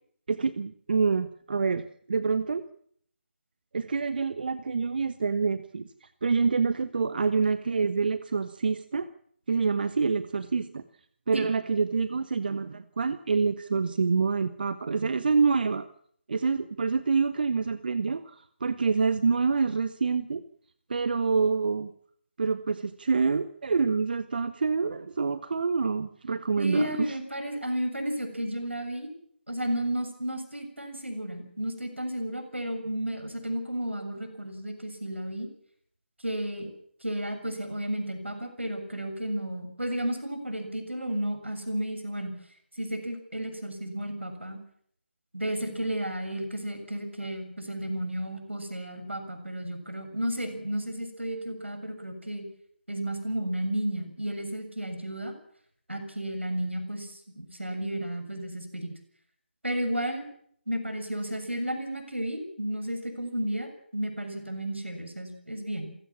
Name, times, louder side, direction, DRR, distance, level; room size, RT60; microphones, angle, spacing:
voice 1, 0.3-2.6 3.7-9.1 9.5-10.8 11.3-15.9 16.3-20.4 20.9-21.9 22.4-27.2, right 4 dB, 50° right, 12 dB, 1.2 m, -27 dB
voice 2, 26.6-29.1 29.5-35.5 36.2-36.7 37.0-42.3 42.7-44.6 45.3-52.4 52.9-55.3 55.9-58.9 59.6-60.3 60.7-65.9, right 1 dB, 85° right, 7 dB, 6.9 m, -32 dB
27.5 x 16.0 x 7.4 m, 0.63 s
figure-of-eight pair, 150°, 6 cm